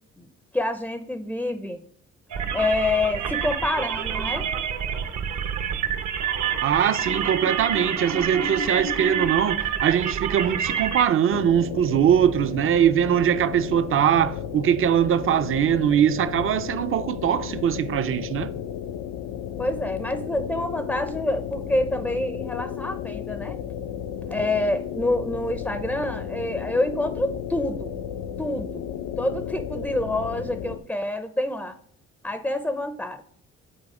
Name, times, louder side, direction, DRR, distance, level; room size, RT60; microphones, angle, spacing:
voice 1, 0.5-1.8 2.5-4.5 19.6-23.6 24.3-27.9 28.4-28.9 29.2-31.7 32.2-33.2, left 2 dB, 5° left, 0.5 m, -27 dB
sound 1, 2.3-11.0, right 7 dB, 65° right, 0.9 m, -27 dB
voice 2, 6.6-18.5, right 9 dB, 45° right, 0.5 m, -22 dB
sound 2, 11.3-30.8, left 9 dB, 80° left, 0.5 m, -33 dB
7.5 x 4.0 x 4.8 m
cardioid pair, 90°, 30 cm